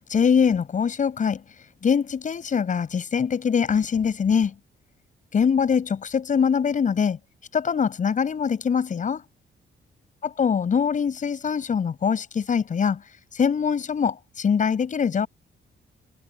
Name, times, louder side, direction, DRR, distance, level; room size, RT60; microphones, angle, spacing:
voice 1, 0.1-1.4 1.8-4.5 5.3-7.2 7.5-9.2 10.2-13.0 13.4-15.3, left 6 dB, 40° left, 7.8 m, -23 dB
wide cardioid pair, 180°, 20 cm